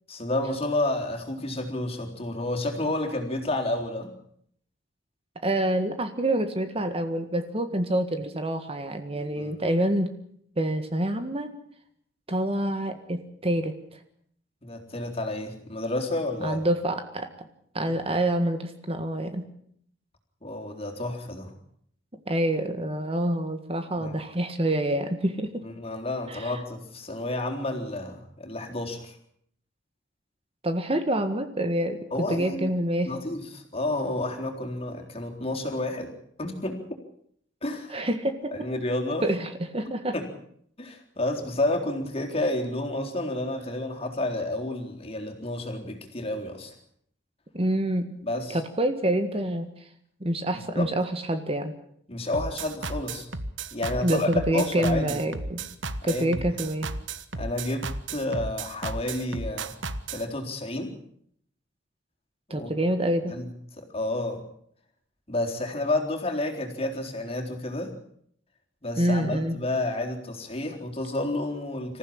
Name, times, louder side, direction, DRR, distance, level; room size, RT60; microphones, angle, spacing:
voice 1, 0.1-4.1 9.4-9.6 14.6-16.7 20.4-21.5 24.0-24.1 25.6-29.2 32.1-32.7 33.1-36.1 36.4-36.8 37.6-38.0 38.5-39.3 40.1-40.2 40.8-46.7 48.2-48.6 50.7-50.9 52.1-53.3 53.7-55.6 56.0-56.4 57.4-59.8 60.1-60.9 62.5-62.7 63.3-63.5 63.8-64.4 65.3-67.9 68.8-72.0, left 2 dB, 35° left, 2 dB, 3.9 m, -30 dB
voice 2, 5.4-10.1 10.5-11.5 12.3-13.7 16.4-17.5 17.7-19.5 22.3-25.5 26.3-26.5 30.6-33.1 37.9-38.5 39.2-40.1 47.5-48.2 48.5-49.7 50.2-51.7 54.0-55.6 56.0-56.9 62.5-63.4 69.0-69.5, right 1 dB, 30° right, 8 dB, 1.7 m, -27 dB
sound 1, 52.3-60.2, right 3 dB, 90° right, 1.4 m, -34 dB
26.0 x 15.0 x 8.7 m, 0.66 s
head